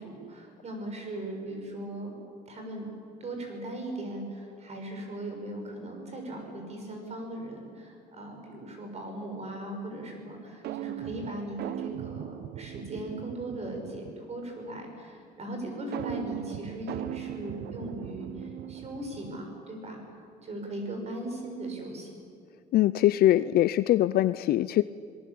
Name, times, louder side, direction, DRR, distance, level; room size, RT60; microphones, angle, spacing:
voice 1, 0.0-2.1 2.5-2.9 3.2-20.0 20.4-22.2, right 1 dB, 40° right, 3 dB, 6.4 m, -38 dB
sound 1, 10.6-14.4 15.9-19.5, right 12 dB, 70° right, 1.0 m, -39 dB
voice 2, 22.7-24.8, left 13 dB, 65° left, 15 dB, 0.5 m, -22 dB
26.0 x 19.0 x 8.6 m, 2.3 s
cardioid pair, 110°, 17 cm